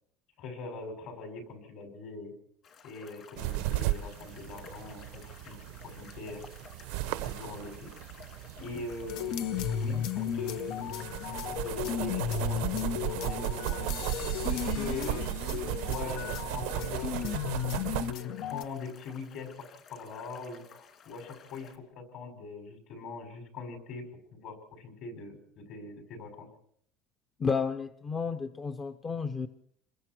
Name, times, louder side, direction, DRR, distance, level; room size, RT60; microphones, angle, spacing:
voice 1, 0.4-2.3 2.8-6.5 7.0-7.9 8.6-13.9 14.5-15.2 15.6-17.4 17.9-26.5, left 3 dB, 55° left, 5 dB, 6.1 m, -42 dB
sound 1, 2.6-21.8, left 5 dB, 40° left, 2.8 m, -54 dB
sound 2, 3.4-18.1, right 16 dB, 85° right, 0.8 m, -36 dB
sound 3, 9.1-18.6, left 9 dB, 75° left, 1.1 m, -34 dB
voice 2, 27.4-29.5, left 5 dB, 20° left, 9 dB, 0.8 m, -32 dB
28.5 x 21.5 x 4.7 m, 0.66 s
cardioid pair, 155°, 0 cm